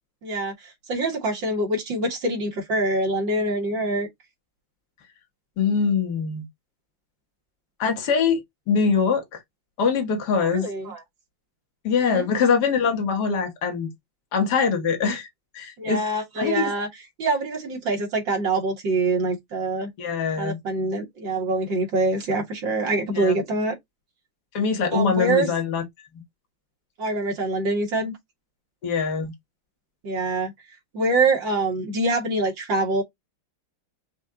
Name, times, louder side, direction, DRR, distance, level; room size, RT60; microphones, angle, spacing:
voice 1, 0.2-4.1 10.6-11.0 12.0-12.3 15.8-16.9 17.2-19.9 20.4-23.7 24.9-25.5 27.0-28.1 30.0-30.5 30.9-33.0, right 2 dB, 65° right, 2.3 m, -25 dB
voice 2, 5.6-6.5 7.8-8.4 8.7-9.4 9.8-10.7 11.8-13.9 14.3-15.3 15.5-16.0 16.4-16.7 20.0-20.6 23.1-23.3 24.5-25.8 28.8-29.3, left 5 dB, 55° left, 1.7 m, -23 dB
5.5 x 2.6 x 3.7 m
omnidirectional pair, 2.2 m